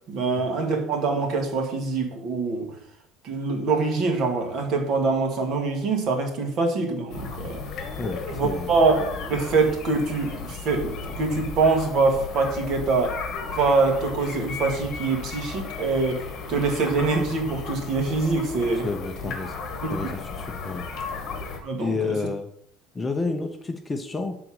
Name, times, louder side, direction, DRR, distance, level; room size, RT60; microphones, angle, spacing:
voice 1, 0.1-2.7 3.2-7.6 8.3-13.2 13.5-18.9 19.8-20.2 21.6-22.1, right 3 dB, 45° right, 1.5 m, -24 dB
sound 1, 7.1-21.6, left 4 dB, 40° left, 1.4 m, -35 dB
voice 2, 8.0-8.7 18.8-19.5 19.9-20.9 21.8-22.5 22.9-24.4, left 3 dB, 15° left, 0.5 m, -30 dB
7.2 x 3.9 x 6.2 m
cardioid pair, 160°, 0 cm